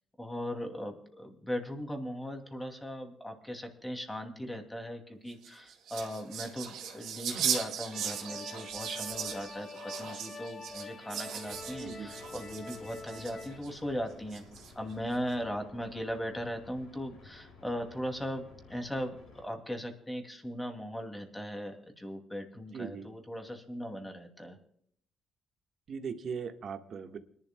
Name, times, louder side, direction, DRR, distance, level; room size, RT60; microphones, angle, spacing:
voice 1, 0.2-9.7 10.0-14.4 14.7-24.6, equal, 10° left, 5 dB, 2.4 m, -38 dB
sound 1, 5.3-13.7 14.3-14.9, right 8 dB, 80° right, 2.1 m, -38 dB
sound 2, 7.9-13.6, left 4 dB, 35° left, 2.0 m, -46 dB
sound 3, 11.4-19.5, left 4 dB, 85° left, 5.9 m, -55 dB
voice 2, 11.8-12.1 22.7-23.1 25.9-27.2, right 6 dB, 60° right, 7 dB, 1.4 m, -39 dB
29.0 x 11.0 x 2.2 m, 0.64 s
cardioid pair, 90°, 0 cm